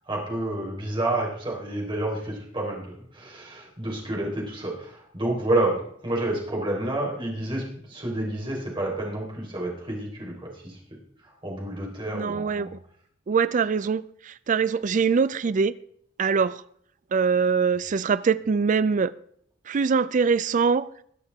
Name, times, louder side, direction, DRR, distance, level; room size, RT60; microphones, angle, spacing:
voice 1, 0.1-10.8 11.4-12.7, right 1 dB, 25° right, 4.0 m, -29 dB
voice 2, 12.1-12.8 13.3-15.7 16.2-16.6 17.1-19.1 19.7-20.9, right 5 dB, 40° right, 0.4 m, -23 dB
22.0 x 8.2 x 3.5 m
head